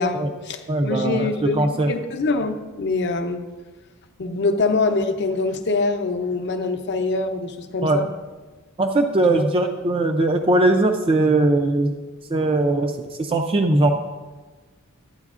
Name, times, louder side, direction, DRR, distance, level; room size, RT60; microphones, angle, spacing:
voice 1, 0.0-3.4 4.2-8.1 9.3-9.4, left 3 dB, 50° left, 6 dB, 0.6 m, -24 dB
voice 2, 0.7-1.3 1.6-1.9 7.8-8.0 8.8-11.9 12.3-12.9 13.2-13.9, right 2 dB, 25° right, 4 dB, 0.4 m, -19 dB
13.0 x 8.9 x 2.4 m, 1.3 s
head